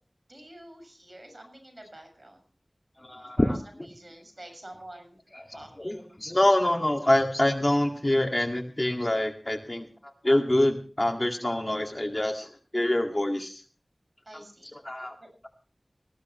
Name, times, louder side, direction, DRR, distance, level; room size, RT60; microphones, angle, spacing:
voice 1, 0.3-2.4 3.4-3.5 3.8-5.2 5.5-6.2 14.2-14.8 15.2-15.3, right 1 dB, 50° right, 5 dB, 6.8 m, -47 dB
voice 2, 3.0-3.6 5.3-9.9 10.2-13.6 14.8-15.2, left 1 dB, 30° left, 3 dB, 2.1 m, -25 dB
20.0 x 15.0 x 3.1 m, 0.39 s
wide cardioid pair, 55°, 0 cm